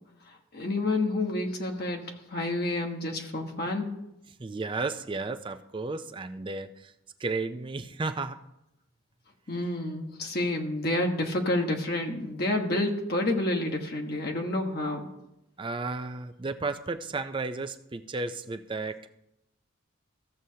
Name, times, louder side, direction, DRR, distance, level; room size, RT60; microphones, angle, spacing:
voice 1, 0.5-2.0 2.3-3.9 9.5-15.1, left 2 dB, 45° left, 2 dB, 1.2 m, -29 dB
voice 2, 4.4-6.9 7.2-8.4 15.6-19.1, right 3 dB, 25° right, 9 dB, 0.4 m, -33 dB
14.5 x 7.6 x 2.8 m, 0.86 s
head